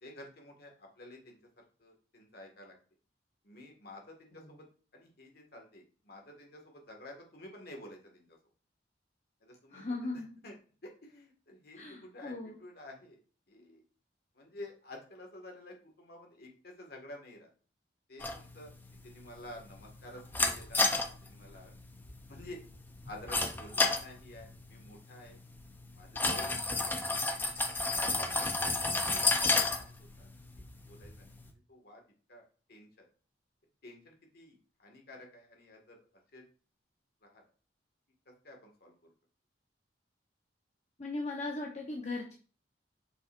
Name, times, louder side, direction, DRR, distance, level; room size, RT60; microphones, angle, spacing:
voice 1, 0.0-2.7 3.4-4.7 4.9-8.4 9.4-10.6 10.8-13.2 13.5-13.8 14.3-17.5 18.1-18.7 19.0-20.8 21.2-21.7 22.3-22.6 23.0-25.4 25.9-27.2 27.8-28.8 29.3-32.0 32.3-32.4 32.7-33.1 33.8-36.0 36.3-36.5 37.2-37.4 38.3-39.1, left 1 dB, 60° left, 1 dB, 1.8 m, -51 dB
voice 2, 9.7-10.3 11.7-12.5 41.0-42.3, left 2 dB, 40° left, -1 dB, 1.0 m, -38 dB
sound 1, 18.2-31.5, left 3 dB, 10° left, 0.6 m, -33 dB
7.2 x 5.5 x 2.5 m, 0.39 s
head